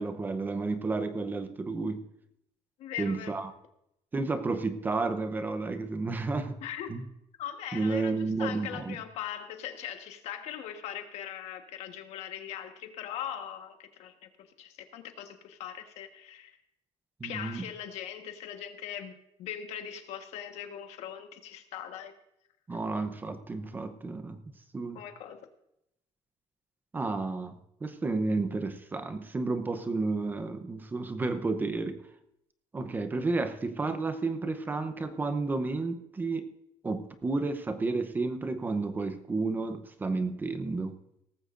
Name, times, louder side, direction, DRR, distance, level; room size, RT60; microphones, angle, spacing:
voice 1, 0.0-2.0 3.0-3.5 4.1-6.6 6.9-7.0 7.7-9.0 17.2-17.7 22.7-24.4 24.7-25.0 26.9-27.5 27.8-32.0 32.7-36.5 36.8-41.0, right 3 dB, 15° right, 10 dB, 0.8 m, -31 dB
voice 2, 2.8-3.3 6.6-6.9 7.4-16.6 17.2-22.1 22.7-22.8 24.9-25.4, left 10 dB, 75° left, 6 dB, 1.4 m, -40 dB
18.0 x 14.5 x 2.6 m, 0.80 s
cardioid pair, 175°, 11 cm